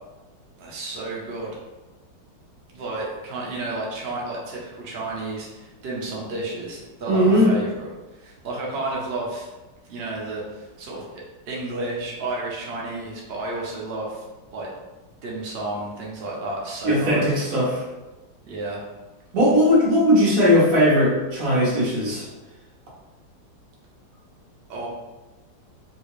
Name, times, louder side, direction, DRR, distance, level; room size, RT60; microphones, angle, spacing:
voice 1, 0.6-1.5 2.7-7.9 8.2-9.5 9.9-11.1 11.5-14.2 14.5-14.7 15.2-17.2 18.4-18.8 24.7-24.9, right 2 dB, 80° right, -4 dB, 0.5 m, -31 dB
voice 2, 7.1-7.5 16.8-17.8 19.3-22.3, equal, 55° right, -6 dB, 1.3 m, -18 dB
3.6 x 2.4 x 3.1 m, 1.1 s
omnidirectional pair, 2.0 m